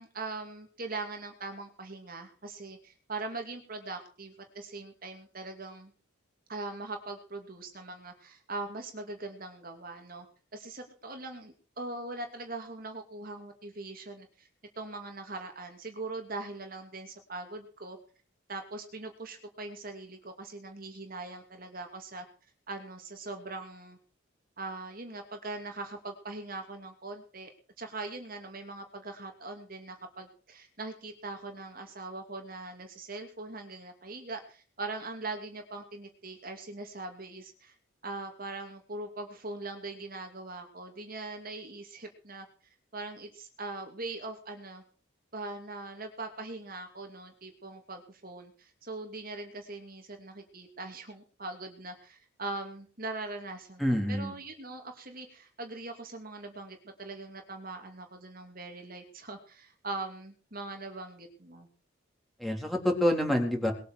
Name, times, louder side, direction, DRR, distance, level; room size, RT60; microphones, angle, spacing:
voice 1, 0.0-5.9 6.5-10.3 10.5-14.5 14.8-18.0 18.5-22.3 22.7-24.0 24.6-27.5 27.8-37.7 38.0-42.5 42.9-44.8 45.3-61.7, right 3 dB, 45° right, 4 dB, 2.6 m, -41 dB
voice 2, 53.8-54.3 62.4-63.7, left 1 dB, ahead, 1 dB, 3.7 m, -27 dB
21.0 x 8.3 x 6.6 m, 0.40 s
head